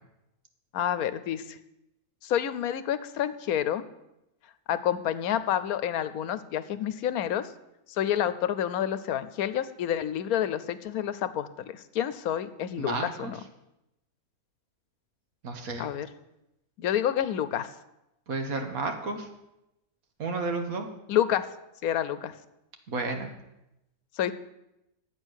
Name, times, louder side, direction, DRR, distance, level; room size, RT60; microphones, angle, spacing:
voice 1, 0.7-1.6 2.2-3.8 4.7-7.5 7.9-13.4 15.8-16.1 16.8-17.7 21.1-21.5 21.8-22.3 24.2-24.3, left 10 dB, 80° left, 13 dB, 1.1 m, -28 dB
voice 2, 12.8-13.3 15.4-15.9 18.3-19.3 20.2-20.9 22.9-23.3, right 3 dB, 75° right, 5 dB, 1.8 m, -32 dB
10.5 x 8.2 x 6.4 m, 0.89 s
omnidirectional pair, 1.5 m